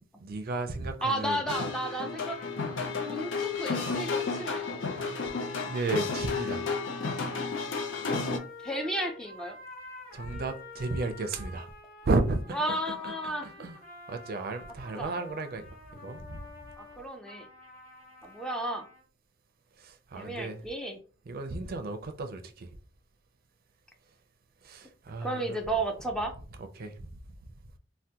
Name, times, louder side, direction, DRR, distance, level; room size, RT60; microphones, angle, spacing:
voice 1, 0.2-1.4 5.6-6.7 10.1-11.7 12.0-13.8 14.1-16.5 19.8-20.6 21.3-22.7 24.6-25.6 26.6-27.1, right 3 dB, 55° right, 0.4 m, -33 dB
voice 2, 1.0-2.4 3.1-4.7 8.6-9.6 12.5-13.5 15.0-15.2 16.8-17.5 18.2-18.8 20.1-21.0 25.2-26.3, right 1 dB, 5° left, 0.4 m, -33 dB
sound 1, 1.5-8.4, left 4 dB, 85° left, 0.5 m, -32 dB
sound 2, 1.9-19.0, left 3 dB, 45° left, 0.9 m, -48 dB
3.4 x 2.2 x 2.8 m
head